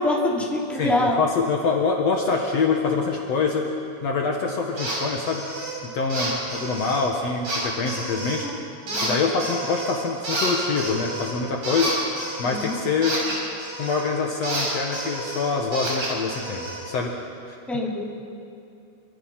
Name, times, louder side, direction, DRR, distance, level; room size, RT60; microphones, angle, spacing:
voice 1, 0.0-1.2 8.4-8.5 8.9-9.2 12.4-12.8 17.7-18.0, left 1 dB, ahead, -4 dB, 3.3 m, -25 dB
voice 2, 0.8-3.7 4.0-5.5 5.9-8.5 9.0-12.0 12.4-13.2 13.8-17.6, left 4 dB, 55° left, 1 dB, 2.5 m, -25 dB
sound 1, 4.8-5.0 5.3-5.7 6.1-7.0 7.5-8.5 8.9-10.0 10.2-14.1 14.4-16.8, right 1 dB, 65° right, 7.3 m, -30 dB
28.0 x 24.5 x 5.8 m, 2.6 s
omnidirectional pair, 3.7 m